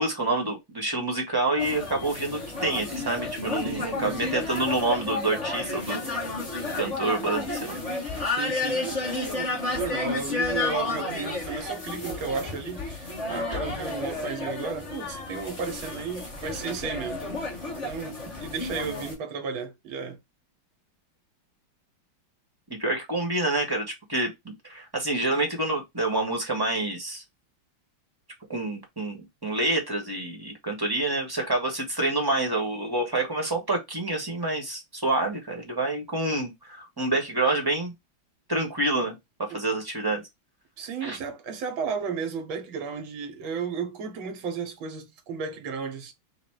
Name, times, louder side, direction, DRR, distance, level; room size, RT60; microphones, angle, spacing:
voice 1, 0.0-6.1 6.7-7.7 22.8-27.2 28.5-29.2 29.4-37.9 38.5-40.2 41.0-41.2, right 2 dB, 15° right, 1.1 m, -27 dB
sound 1, 1.6-19.2, left 3 dB, 20° left, 1.4 m, -32 dB
voice 2, 3.7-4.1 8.2-20.2 39.5-39.6 40.8-46.1, right 5 dB, 80° right, 1.8 m, -34 dB
4.0 x 2.6 x 4.6 m
omnidirectional pair, 2.2 m